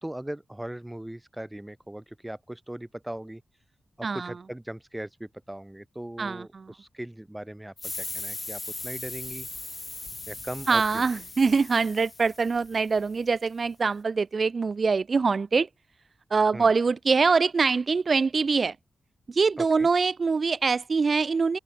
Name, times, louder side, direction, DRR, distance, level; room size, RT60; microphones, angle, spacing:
voice 1, 0.0-3.4 4.0-9.5 10.3-11.0 16.5-16.7 19.6-19.9, right 1 dB, 10° right, 1.2 m, -39 dB
voice 2, 4.0-4.3 6.2-6.7 10.7-15.7 16.3-18.8 19.3-21.6, right 4 dB, 45° right, 0.4 m, -24 dB
sound 1, 7.8-13.1, left 3 dB, 30° left, 1.2 m, -39 dB
open air
wide cardioid pair, 115°, 0 cm